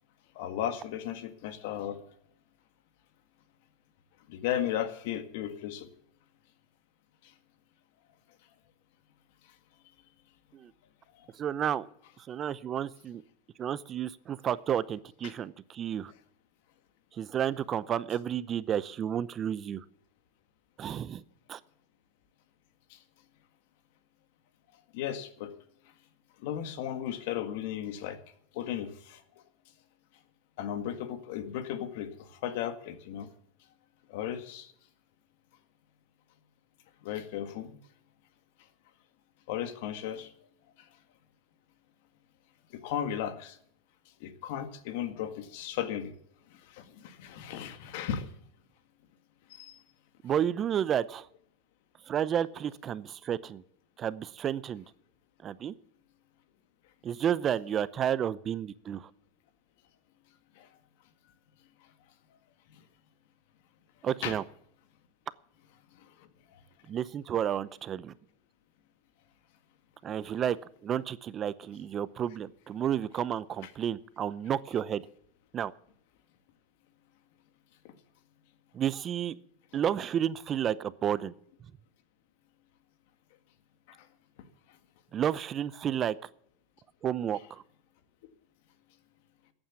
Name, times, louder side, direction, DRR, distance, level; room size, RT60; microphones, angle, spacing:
voice 1, 0.4-2.0 4.3-5.9 7.2-7.3 11.2-11.3 15.2-15.3 22.9-23.0 24.9-25.5 26.4-28.2 28.5-29.2 30.6-33.3 34.1-34.7 37.0-37.8 39.5-40.3 40.8-40.9 42.7-43.6 44.2-46.1 46.5-48.3 49.5-49.8 60.6-60.7 62.7-62.8 64.2-64.4 65.9-66.6 77.8-77.9 83.9-84.1, left 10 dB, 70° left, 10 dB, 1.8 m, -36 dB
voice 2, 11.4-11.9 12.2-13.2 13.6-16.1 17.1-19.8 20.8-21.2 21.5-21.6 50.2-51.3 52.1-53.6 54.0-54.8 55.4-55.7 57.0-59.1 64.0-64.4 66.9-68.1 70.0-70.6 70.8-75.0 75.5-75.7 78.7-79.4 79.7-81.3 85.1-86.2 87.0-87.6, right 9 dB, 30° right, 17 dB, 0.7 m, -31 dB
14.0 x 8.9 x 7.1 m, 0.67 s
supercardioid pair, 125°, 0 cm